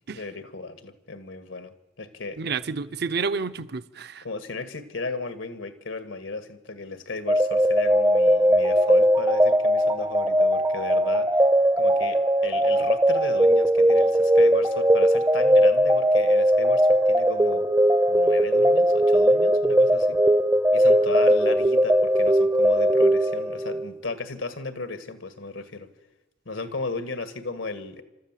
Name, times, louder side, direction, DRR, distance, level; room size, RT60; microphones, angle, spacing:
voice 1, 0.1-1.7 2.0-2.4 4.2-11.3 11.8-17.7 18.1-20.2 20.7-25.9 26.5-28.0, left 3 dB, 85° left, 1.8 m, -35 dB
voice 2, 2.4-4.2, right 5 dB, 60° right, 0.7 m, -30 dB
sound 1, 7.3-23.9, equal, 15° right, 0.6 m, -20 dB
29.0 x 13.5 x 7.6 m
head